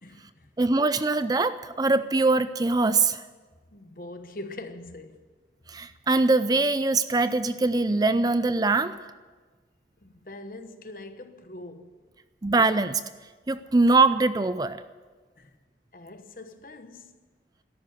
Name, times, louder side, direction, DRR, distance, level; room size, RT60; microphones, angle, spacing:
voice 1, 0.0-0.5 3.7-5.3 10.0-12.0 15.4-15.5 15.9-17.2, left 2 dB, 50° left, 1.1 m, -43 dB
voice 2, 0.6-3.2 5.7-9.0 12.4-13.0 13.5-14.8, right 3 dB, 20° right, 0.4 m, -22 dB
13.5 x 11.0 x 9.2 m
head